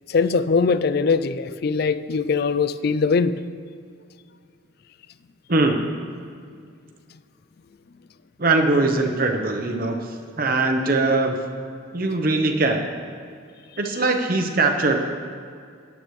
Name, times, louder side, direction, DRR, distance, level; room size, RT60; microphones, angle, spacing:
voice 1, 0.1-3.3, left 4 dB, 50° left, 14 dB, 0.4 m, -21 dB
voice 2, 5.5-5.8 8.4-11.4 11.9-12.8 13.8-15.0, right 2 dB, 45° right, 5 dB, 0.8 m, -21 dB
15.0 x 9.3 x 3.2 m, 2.2 s
head